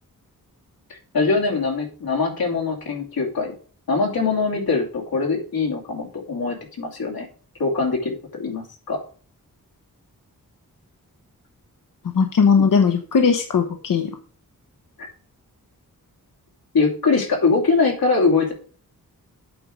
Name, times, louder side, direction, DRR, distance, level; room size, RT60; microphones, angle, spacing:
voice 1, 1.1-3.5 3.9-7.3 7.6-9.0 12.5-12.6 15.0-15.1 16.7-18.5, left 4 dB, 85° left, 0 dB, 2.8 m, -22 dB
voice 2, 12.0-14.1, left 6 dB, 65° left, 6 dB, 1.0 m, -18 dB
8.6 x 6.1 x 5.1 m, 0.42 s
cardioid pair, 70°, 35 cm